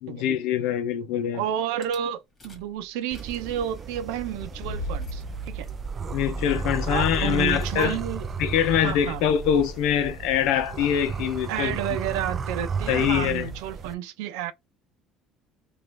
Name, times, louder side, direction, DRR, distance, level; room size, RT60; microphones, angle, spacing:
voice 1, 0.0-1.4 6.1-8.0 8.4-11.8 12.9-13.5, left 9 dB, 80° left, 0.6 m, -24 dB
voice 2, 1.3-5.7 6.9-8.3 8.8-9.2 11.5-14.5, right 10 dB, 90° right, 0.6 m, -31 dB
Rattle / Car / Engine starting, 1.8-2.0 2.4-2.7 3.0-10.7, left 1 dB, 25° left, 1.8 m, -36 dB
sound 1, 3.1-13.9, right 6 dB, 30° right, 0.4 m, -34 dB
3.0 x 2.5 x 3.3 m
cardioid pair, 130°, 0 cm